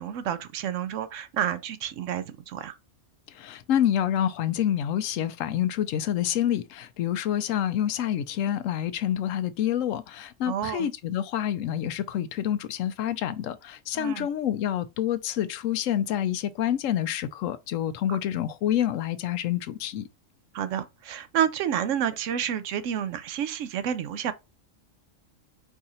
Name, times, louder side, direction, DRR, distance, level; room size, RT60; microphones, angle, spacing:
voice 1, 0.0-2.8 10.5-10.9 13.9-14.3 20.5-24.3, right 9 dB, 75° right, 0.9 m, -29 dB
voice 2, 3.3-20.1, left 10 dB, 80° left, 1.0 m, -27 dB
4.7 x 2.5 x 4.2 m
omnidirectional pair, 1.3 m